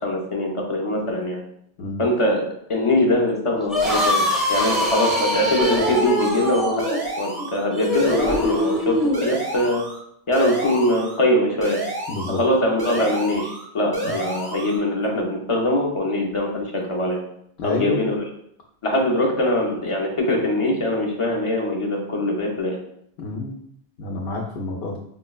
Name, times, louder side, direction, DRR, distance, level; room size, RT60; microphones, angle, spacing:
voice 1, 0.0-1.4 2.0-6.9 7.2-9.8 10.3-11.8 12.3-17.2 17.6-18.2 18.8-22.8, left 1 dB, 40° left, -1 dB, 0.5 m, -22 dB
sound 1, 3.6-9.2, left 1 dB, ahead, 0.7 m, -23 dB
sound 2, 5.6-6.5 6.8-7.6 7.9-8.8 9.1-10.0 10.3-11.2 11.6-12.5 12.8-13.6 13.9-14.8, right 2 dB, 30° right, 0.5 m, -30 dB
voice 2, 12.1-12.4 14.0-14.1 17.6-18.0 23.2-23.5 24.0-25.0, left 3 dB, 80° left, -2 dB, 0.8 m, -28 dB
5.0 x 2.1 x 2.3 m, 0.70 s
omnidirectional pair, 1.0 m